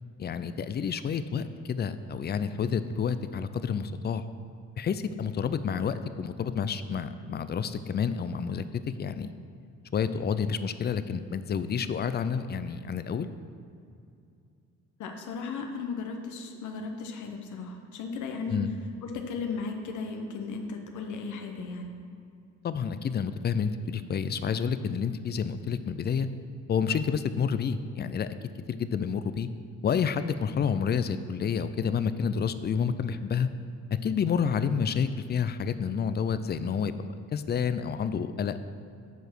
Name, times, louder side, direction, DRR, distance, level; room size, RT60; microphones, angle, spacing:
voice 1, 0.2-4.2 4.8-8.6 9.0-9.3 9.9-13.3 18.5-18.7 22.6-26.3 26.7-28.3 28.7-29.5 29.8-33.5 34.0-38.6, left 6 dB, 35° left, 12 dB, 0.4 m, -29 dB
voice 2, 15.0-18.6 19.0-21.9, left 4 dB, 75° left, 3 dB, 1.0 m, -36 dB
8.0 x 4.8 x 6.0 m, 2.5 s
cardioid pair, 90°, 30 cm